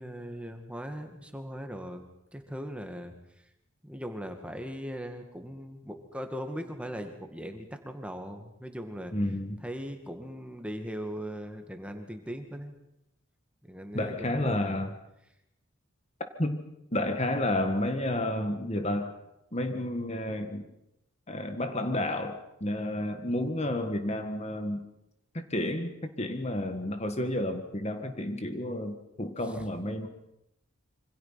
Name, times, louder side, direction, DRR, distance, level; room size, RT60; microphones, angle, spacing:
voice 1, 0.0-2.0 2.3-3.4 3.8-9.1 9.6-12.8 13.6-14.7 29.5-29.7, equal, 5° right, 5 dB, 2.2 m, -39 dB
voice 2, 9.1-9.6 13.9-14.9 16.4-16.6 16.9-19.2 19.5-20.7 21.3-24.8 25.3-30.1, left 1 dB, 30° left, 7 dB, 1.8 m, -31 dB
27.0 x 25.5 x 5.9 m, 0.84 s
head